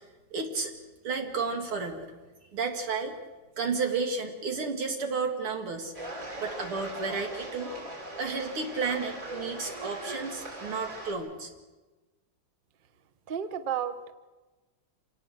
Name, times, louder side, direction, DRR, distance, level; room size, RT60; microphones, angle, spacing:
voice 1, 0.3-0.7 1.0-2.1 2.5-3.1 3.6-5.9 6.4-7.7 8.2-11.5, right 4 dB, 85° right, 4 dB, 3.2 m, -32 dB
sound 1, 5.9-11.1, right 1 dB, 40° right, 4.0 m, -40 dB
voice 2, 13.3-14.1, right 8 dB, 55° right, 12 dB, 0.5 m, -32 dB
26.5 x 18.0 x 6.6 m, 1.2 s
omnidirectional pair, 2.3 m